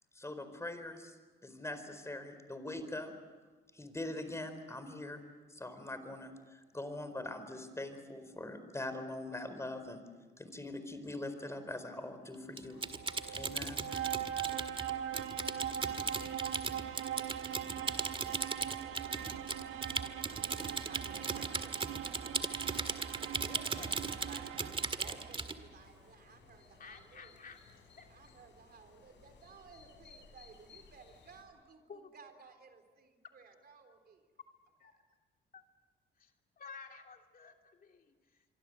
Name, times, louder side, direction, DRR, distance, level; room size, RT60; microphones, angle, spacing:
voice 1, 0.1-3.1 3.7-5.2 5.5-10.0 10.4-12.8 13.3-13.8, left 1 dB, 15° left, 9 dB, 4.5 m, -42 dB
Typing, 12.6-25.6, right 4 dB, 25° right, 1.9 m, -37 dB
sound 1, 12.7-31.4, left 4 dB, 65° left, 7.0 m, -61 dB
sound 2, 12.7-25.5, right 10 dB, 85° right, 1.4 m, -41 dB
voice 2, 20.7-24.7 25.0-27.3 28.1-34.3, right 5 dB, 50° right, 7 dB, 3.8 m, -57 dB
voice 3, 23.4-24.0 26.8-27.6 28.0-28.3 31.9-32.1 34.8-35.0 35.5-35.6 36.2-38.4, left 5 dB, 45° left, 3 dB, 3.0 m, -53 dB
26.0 x 24.5 x 7.9 m, 1.3 s
cardioid pair, 90°, 20 cm